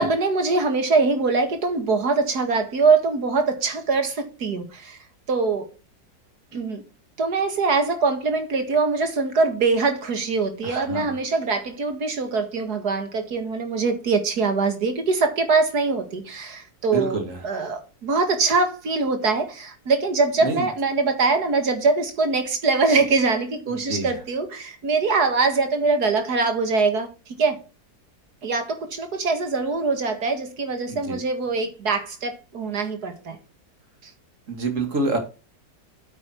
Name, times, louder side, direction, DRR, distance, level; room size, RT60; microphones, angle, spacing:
voice 1, 0.0-5.0 5.3-5.7 6.5-6.8 7.2-17.2 17.4-27.1 27.4-27.6 28.4-33.4, right 4 dB, 60° right, 2.3 m, -23 dB
voice 2, 10.6-11.2 16.9-17.4 20.4-20.7 23.7-24.1 30.9-31.2 34.5-35.2, right 2 dB, 45° right, 2.6 m, -27 dB
8.8 x 8.5 x 4.6 m
omnidirectional pair, 1.9 m